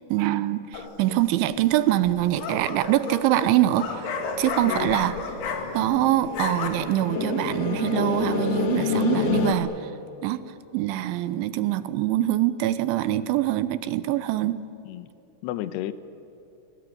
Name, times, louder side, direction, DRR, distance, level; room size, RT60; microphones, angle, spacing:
voice 1, 0.1-5.2 5.7-9.7 10.2-10.4 10.7-14.6, right 14 dB, 75° right, 14 dB, 3.2 m, -24 dB
sound 1, 0.7-1.2 2.1-6.0 6.2-6.7, left 5 dB, 60° left, 3.9 m, -32 dB
sound 2, 4.1-9.5, left 6 dB, 40° left, 2.5 m, -29 dB
voice 2, 4.6-5.0 14.9-15.1 15.4-15.9, left 13 dB, 75° left, 13 dB, 2.7 m, -32 dB
26.5 x 22.5 x 9.3 m, 3.0 s
omnidirectional pair, 5.7 m